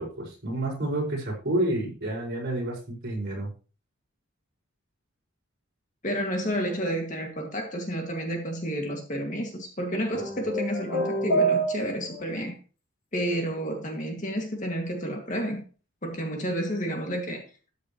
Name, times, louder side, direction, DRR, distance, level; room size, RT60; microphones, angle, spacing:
voice 1, 0.0-3.5, right 1 dB, 50° right, 5.3 m, -29 dB
voice 2, 6.0-12.6 13.1-15.6 16.0-17.4, equal, 35° left, 2.0 m, -30 dB
sound 1, 10.1-12.2, right 2 dB, 85° left, 4.6 m, -26 dB
13.0 x 8.8 x 3.0 m
head